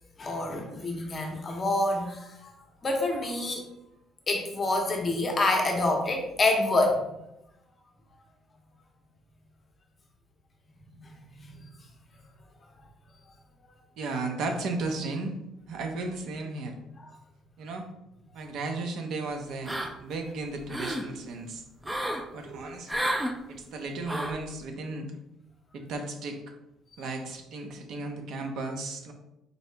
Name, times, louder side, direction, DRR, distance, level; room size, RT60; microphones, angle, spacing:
voice 1, 0.2-2.5 2.8-3.7 4.3-7.2 11.0-11.7 17.0-17.1, left 2 dB, 25° left, 2 dB, 0.7 m, -27 dB
voice 2, 14.0-15.4 15.7-16.7 17.6-17.9 18.3-21.9 22.3-23.1 23.5-25.1 25.7-26.4 27.0-29.1, right 3 dB, 60° right, 4 dB, 0.6 m, -35 dB
sound 1, 19.7-20.2 20.5-21.1 21.8-22.3 22.9-23.3 24.1-24.4, right 1 dB, 5° right, 0.3 m, -31 dB
4.0 x 2.8 x 3.3 m, 0.86 s
cardioid pair, 165°, 0 cm